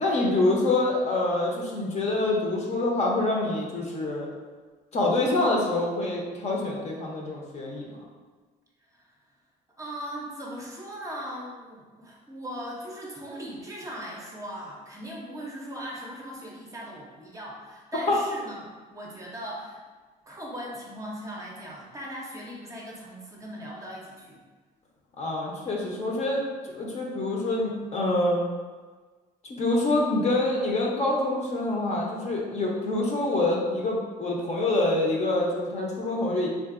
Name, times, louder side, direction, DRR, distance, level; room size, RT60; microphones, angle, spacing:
voice 1, 0.0-4.3 4.9-8.0 18.1-18.2 25.2-28.4 29.6-36.5, left 2 dB, 40° left, -2 dB, 0.7 m, -26 dB
voice 2, 8.8-9.1 9.8-19.8 20.3-24.4, equal, 20° right, -3 dB, 0.6 m, -39 dB
3.6 x 2.5 x 2.4 m, 1.4 s
cardioid pair, 110°, 17 cm